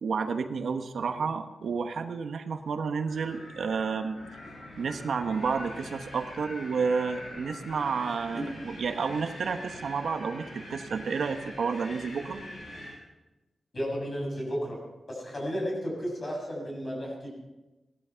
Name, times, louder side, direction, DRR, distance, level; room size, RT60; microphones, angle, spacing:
voice 1, 0.0-4.2 4.8-12.4, right 5 dB, 75° right, 7 dB, 1.2 m, -30 dB
Wind, 3.1-13.0, left 1 dB, 65° left, 5.9 m, -44 dB
voice 2, 13.7-14.8 15.1-17.3, equal, 30° left, -1 dB, 6.5 m, -33 dB
18.5 x 12.5 x 5.8 m, 1.1 s
wide cardioid pair, 165°, 0 cm